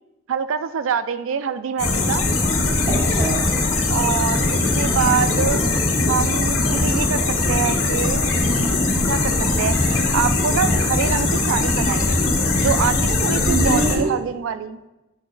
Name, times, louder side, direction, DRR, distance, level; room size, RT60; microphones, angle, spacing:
voice 1, 0.3-2.3 3.9-5.7 6.1-8.3 9.1-12.2 12.6-14.8, right 7 dB, 65° right, 13 dB, 0.3 m, -25 dB
sound 1, 1.8-14.0, left 2 dB, 80° left, 1.3 m, -20 dB
voice 2, 2.9-3.4 8.3-8.8 12.9-13.1 13.4-14.3, right 2 dB, 35° right, -2 dB, 1.3 m, -26 dB
9.4 x 4.4 x 2.5 m, 1.0 s
head